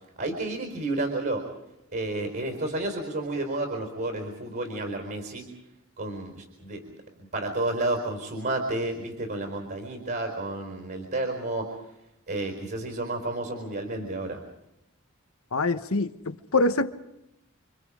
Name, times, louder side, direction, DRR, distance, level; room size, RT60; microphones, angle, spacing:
voice 1, 0.2-1.5 1.9-5.5 6.0-6.9 7.3-11.8 12.3-14.4, right 2 dB, 50° right, 3 dB, 4.6 m, -31 dB
voice 2, 15.5-16.9, left 2 dB, 80° left, 10 dB, 1.2 m, -25 dB
29.5 x 26.0 x 5.0 m, 0.84 s
head